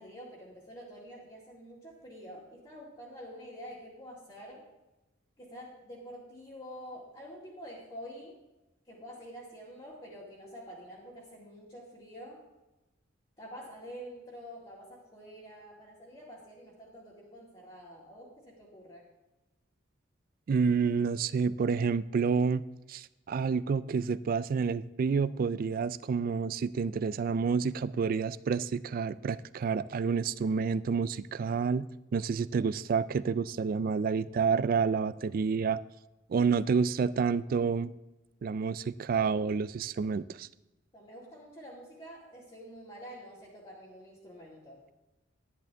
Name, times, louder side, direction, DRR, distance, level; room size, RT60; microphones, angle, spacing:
voice 1, 0.0-4.7 5.4-8.4 8.8-12.4 13.4-19.1 40.9-44.8, equal, 25° left, -7 dB, 2.1 m, -47 dB
voice 2, 20.5-22.6 22.9-31.9 32.1-35.8 36.3-37.9 38.4-40.5, right 5 dB, 45° right, 18 dB, 0.3 m, -29 dB
11.0 x 10.5 x 3.4 m, 1.0 s
head